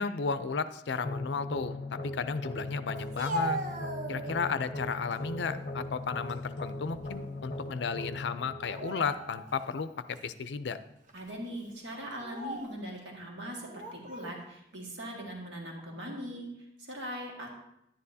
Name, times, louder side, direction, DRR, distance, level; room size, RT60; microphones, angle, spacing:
voice 1, 0.0-3.6 4.1-10.8, left 5 dB, 75° left, 12 dB, 0.5 m, -34 dB
sound 1, 1.0-10.0, left 2 dB, 40° left, 1.0 m, -39 dB
Speech, 3.0-4.6 5.1-5.7 6.1-7.3 7.6-7.8 8.6-9.6 10.2-10.3 11.1-11.3 12.1-12.8 13.7-14.4, right 1 dB, 45° right, 0.9 m, -39 dB
voice 2, 11.1-17.5, equal, 80° right, -1 dB, 1.7 m, -41 dB
10.5 x 9.9 x 2.7 m, 0.80 s
head